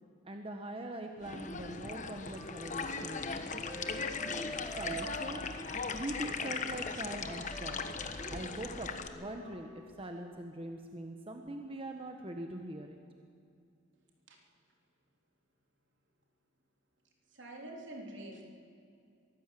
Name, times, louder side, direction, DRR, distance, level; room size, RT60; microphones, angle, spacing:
voice 1, 0.2-5.4 5.9-7.8 8.3-8.9 9.1-13.0, right 1 dB, 30° right, 4 dB, 1.2 m, -43 dB
sound 1, 1.2-9.1, left 4 dB, 40° left, 1.2 m, -39 dB
Wind instrument woodwind instrument, 2.3-5.8 6.1-9.9, right 1 dB, 20° left, 2.9 m, -48 dB
voice 2, 17.3-18.4, right 1 dB, 65° right, 1 dB, 3.5 m, -46 dB
23.0 x 15.5 x 7.7 m, 2.5 s
head